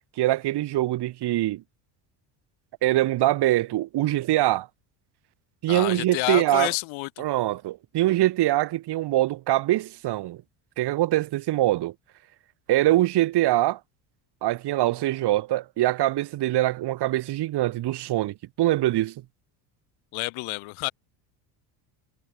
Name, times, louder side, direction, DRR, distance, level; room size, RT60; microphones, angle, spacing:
voice 1, 0.2-1.6 2.8-4.7 5.6-6.7 7.2-10.4 10.8-11.9 12.7-13.8 14.4-19.1, right 15 dB, 55° right, 1.7 m, -23 dB
voice 2, 5.7-7.2 20.1-20.9, left 26 dB, 70° left, 1.8 m, -29 dB
supercardioid pair, 100°, 49 cm